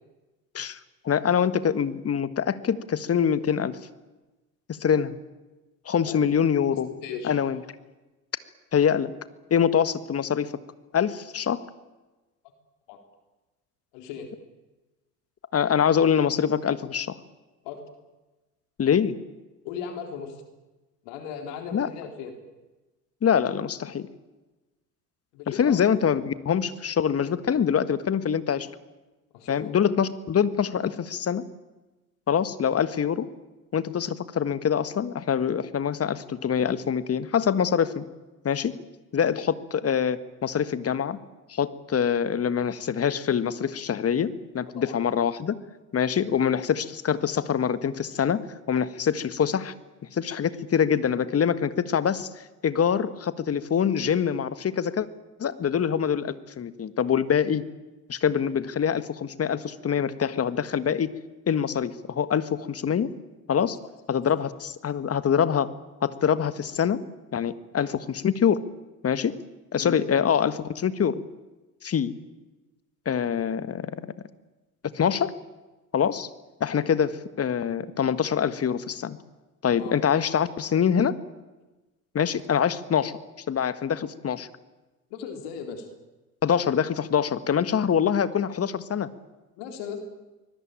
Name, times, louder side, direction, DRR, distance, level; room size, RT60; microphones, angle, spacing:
voice 1, 1.0-3.8 4.7-5.1 5.8-6.9 7.2-7.6 8.7-9.1 9.5-10.5 10.9-11.6 15.5-17.2 18.8-19.2 21.7-21.9 23.2-24.1 25.6-28.7 29.5-31.4 32.3-33.3 33.7-38.0 38.4-38.7 39.1-41.2 41.5-45.6 45.9-49.7 50.1-52.3 52.6-55.1 55.4-57.6 58.1-61.1 61.5-63.1 63.5-63.7 64.1-65.7 66.0-67.0 67.3-68.6 69.0-69.4 69.7-71.2 71.8-72.2 73.0-73.9 74.9-75.3 75.9-76.3 76.6-79.2 79.6-81.2 82.1-83.1 83.5-84.5 86.4-89.1, left 8 dB, 30° left, 14 dB, 1.6 m, -24 dB
voice 2, 6.7-7.3 12.9-13.0 13.9-14.3 17.6-17.8 19.6-20.4 21.0-22.3 25.3-25.9 29.3-29.8 44.7-45.0 63.5-63.6 69.8-70.0 79.8-80.0 85.1-85.9 89.6-90.0, left 7 dB, 60° left, 5 dB, 3.8 m, -37 dB
25.0 x 21.0 x 8.9 m, 1.1 s
hypercardioid pair, 70°, 47 cm